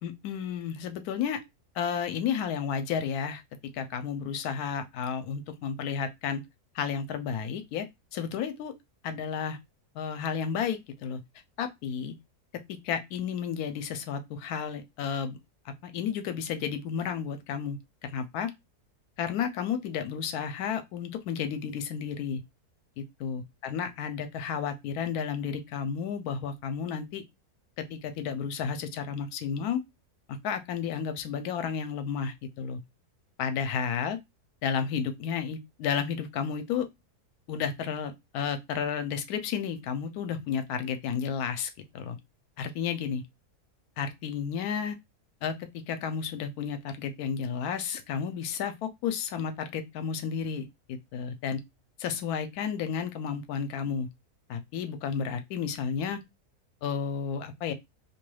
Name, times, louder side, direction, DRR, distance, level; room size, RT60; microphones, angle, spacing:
voice 1, 0.0-1.4 1.8-3.4 3.7-6.4 6.7-7.9 8.1-8.7 9.0-9.6 9.9-11.2 11.6-12.1 12.7-15.4 15.8-18.5 19.2-22.4 23.0-27.2 27.8-29.8 30.3-32.8 33.4-34.2 34.6-36.9 37.5-42.2 42.6-43.2 44.0-45.0 45.4-51.6 52.0-54.1 54.5-56.2 56.8-57.7, left 7 dB, 80° left, 1.1 m, -32 dB
2.7 x 2.2 x 3.1 m
omnidirectional pair, 1.6 m